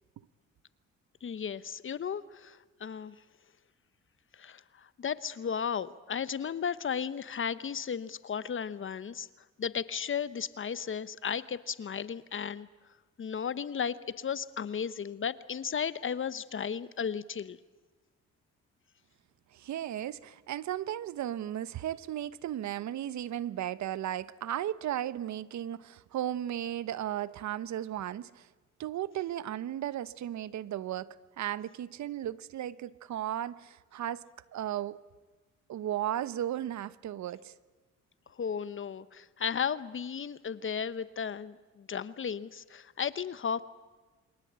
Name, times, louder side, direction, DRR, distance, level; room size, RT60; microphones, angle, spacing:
voice 1, 1.2-3.1 4.3-9.3 9.6-12.7 13.2-17.6 38.3-43.6, left 7 dB, 40° left, 1.0 m, -35 dB
voice 2, 19.5-28.5 28.8-34.2 34.5-35.0 35.7-37.5, right 11 dB, 65° right, 1.0 m, -35 dB
28.5 x 24.0 x 8.8 m
cardioid pair, 90°, 30 cm